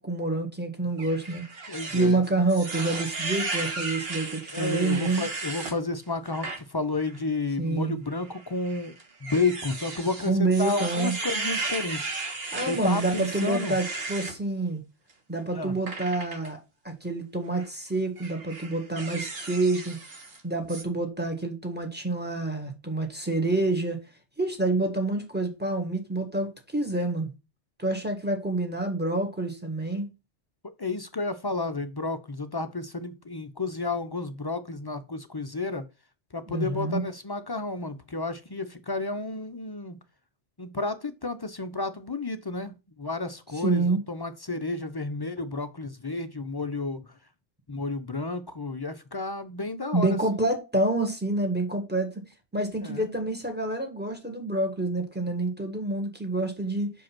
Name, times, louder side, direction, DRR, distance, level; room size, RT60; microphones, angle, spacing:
voice 1, 0.0-1.4 1.9-5.2 7.6-8.0 10.2-11.1 12.5-14.8 15.3-16.6 16.8-20.0 20.4-24.0 24.4-27.3 27.8-30.1 36.5-37.0 43.5-44.0 49.9-52.1 52.5-56.9, right 2 dB, 10° right, 1.6 m, -27 dB
sound 1, 1.0-5.8 6.3-6.6 7.0-7.2 8.2-14.4 15.9-16.5 17.4-17.7 18.2-20.4 20.7-20.8, right 3 dB, 55° right, 1.5 m, -35 dB
voice 2, 1.7-2.2 4.5-8.9 9.2-12.1 12.7-13.8 15.5-15.7 30.8-35.8 36.3-40.0 40.6-47.0 47.7-50.2 52.8-53.1, left 3 dB, 35° left, 0.3 m, -31 dB
5.6 x 5.1 x 5.9 m
omnidirectional pair, 1.2 m